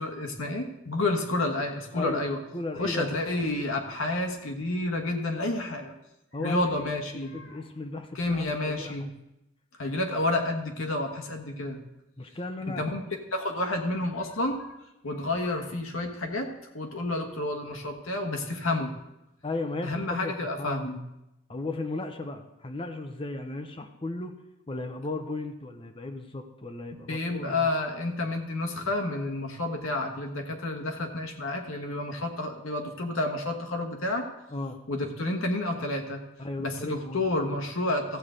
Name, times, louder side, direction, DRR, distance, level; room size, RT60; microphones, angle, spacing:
voice 1, 0.0-2.4 2.8-5.9 6.4-7.6 8.1-9.1 9.8-11.8 12.8-13.0 13.3-14.8 15.0-18.9 19.8-21.0 27.1-34.3 34.9-36.2 36.6-38.2, left 2 dB, 70° left, 3 dB, 1.3 m, -30 dB
voice 2, 2.5-3.1 6.3-6.7 7.3-9.1 12.2-12.8 19.4-20.3 20.6-20.8 21.5-24.3 24.7-27.7 34.5-34.8 36.4-37.6, left 2 dB, 25° left, 6 dB, 0.6 m, -35 dB
14.0 x 8.0 x 3.8 m, 0.90 s
head